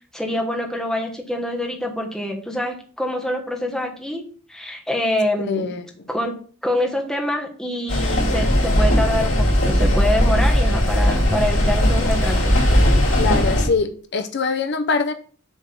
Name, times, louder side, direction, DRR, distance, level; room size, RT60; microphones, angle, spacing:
voice 1, 0.1-4.2 4.5-5.7 6.1-6.3 6.6-12.6, left 1 dB, 5° left, 1.2 m, -25 dB
voice 2, 5.4-5.9 13.2-15.1, left 4 dB, 55° left, 0.6 m, -23 dB
sound 1, 7.9-13.7, equal, 75° left, 3.2 m, -18 dB
7.1 x 3.5 x 5.8 m
head